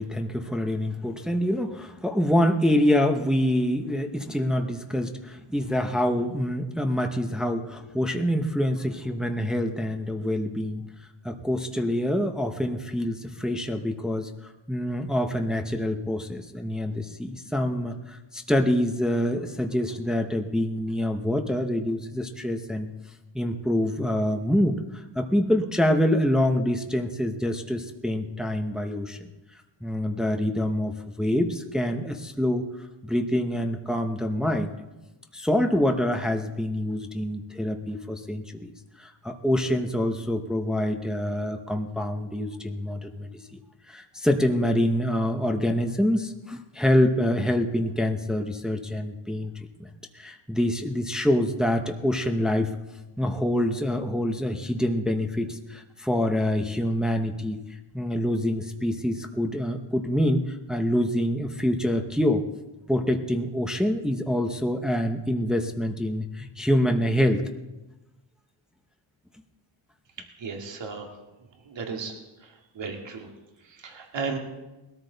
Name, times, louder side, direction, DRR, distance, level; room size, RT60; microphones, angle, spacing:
voice 1, 0.0-10.8 11.2-14.3 14.7-22.9 23.3-29.3 29.8-32.6 33.0-34.7 35.3-38.7 39.0-43.4 43.9-49.5 49.8-49.9 50.1-52.7 53.2-57.6 57.9-62.4 62.9-67.4, left 1 dB, ahead, 4 dB, 0.8 m, -26 dB
voice 2, 70.4-71.1 71.6-73.3 73.6-74.4, right 5 dB, 65° right, 2 dB, 2.3 m, -35 dB
20.5 x 13.5 x 4.0 m, 1.0 s
wide cardioid pair, 160°, 47 cm